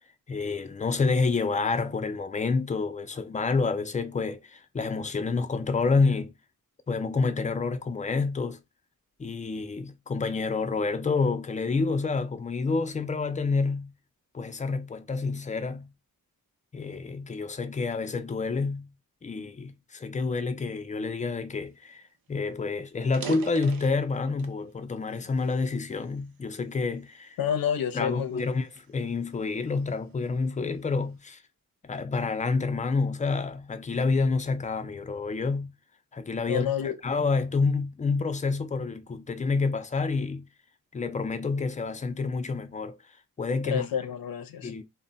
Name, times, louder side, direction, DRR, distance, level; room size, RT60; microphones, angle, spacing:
voice 1, 0.3-6.3 6.9-8.6 9.2-13.9 14.3-15.9 16.7-18.9 19.2-27.4 27.9-31.4 31.8-35.7 36.1-36.7 37.0-40.5 40.9-43.0 43.4-43.9 44.6-44.8, left 4 dB, 25° left, 0.3 m, -28 dB
sound 1, 21.9-22.0 22.3-22.5 23.0-24.6 25.1-26.4 27.0-27.3 27.9-29.9, right 6 dB, 90° right, 0.6 m, -42 dB
voice 2, 27.4-28.5 36.5-37.0 43.6-44.7, left 8 dB, 85° left, 0.6 m, -29 dB
2.1 x 2.1 x 3.8 m
wide cardioid pair, 125°, 34 cm